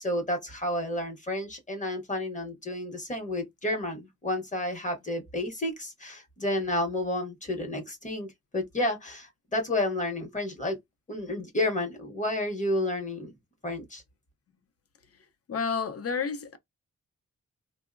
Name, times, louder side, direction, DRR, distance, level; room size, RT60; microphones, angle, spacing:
voice 1, 0.0-10.8 11.1-13.3 13.6-14.0, left 1 dB, 25° left, 0.8 m, -31 dB
voice 2, 15.5-16.6, left 5 dB, 50° left, 0.5 m, -30 dB
3.5 x 2.0 x 2.4 m
wide cardioid pair, 125°, 30 cm